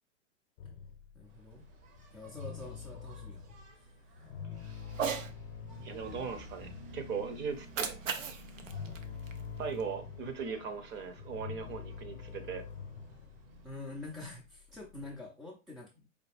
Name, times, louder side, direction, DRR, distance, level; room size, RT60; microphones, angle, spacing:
sound 1, 0.6-3.7 4.2-15.2, left 6 dB, 60° left, 0.7 m, -46 dB
voice 1, 1.1-1.7 2.1-3.9 13.6-16.1, left 2 dB, ahead, -2 dB, 0.3 m, -46 dB
Engine, 1.2-14.2, right 2 dB, 45° right, 1.0 m, -54 dB
Cat, 4.9-5.3 7.5-9.9, right 6 dB, 85° right, 0.7 m, -38 dB
voice 2, 5.8-8.0 9.6-12.6, right 5 dB, 30° right, 7 dB, 0.8 m, -39 dB
5.0 x 2.2 x 3.3 m, 0.29 s
hypercardioid pair, 110°, 37 cm